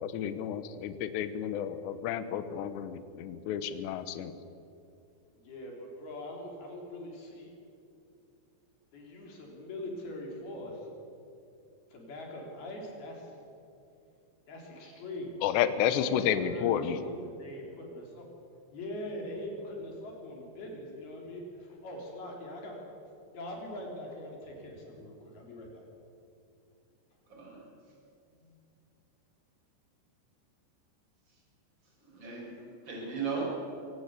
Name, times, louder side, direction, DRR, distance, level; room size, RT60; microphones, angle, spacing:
voice 1, 0.0-4.3 15.4-17.0, left 9 dB, 75° left, 12 dB, 3.2 m, -31 dB
voice 2, 5.3-7.5 8.9-10.9 11.9-13.3 14.5-15.4 15.7-18.3 18.7-22.8 23.3-25.9, left 1 dB, 55° left, 0 dB, 5.6 m, -42 dB
voice 3, 27.3-27.6 32.0-33.5, right 5 dB, 25° right, -2 dB, 6.8 m, -37 dB
25.5 x 17.5 x 8.4 m, 2.7 s
omnidirectional pair, 5.3 m